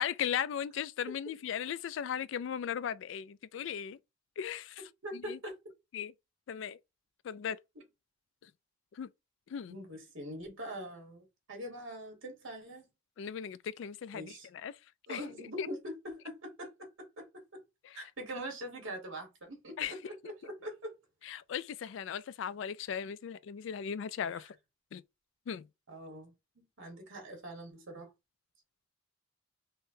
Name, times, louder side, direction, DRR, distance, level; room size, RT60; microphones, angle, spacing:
voice 1, 0.0-4.0 4.4-5.4 5.9-6.1 6.5-6.8 7.2-7.6 8.9-9.1 9.5-9.8 13.2-14.7 15.1-15.2 15.6-15.7 17.8-18.0 19.8-19.9 21.3-24.6 24.9-25.0 25.5-25.7, left 8 dB, 65° left, 0.3 m, -37 dB
voice 2, 5.0-5.5 9.7-12.8 14.1-14.5 15.1-17.6 17.9-20.9 25.9-28.1, equal, 85° right, 1.5 m, -43 dB
5.4 x 2.2 x 2.6 m
head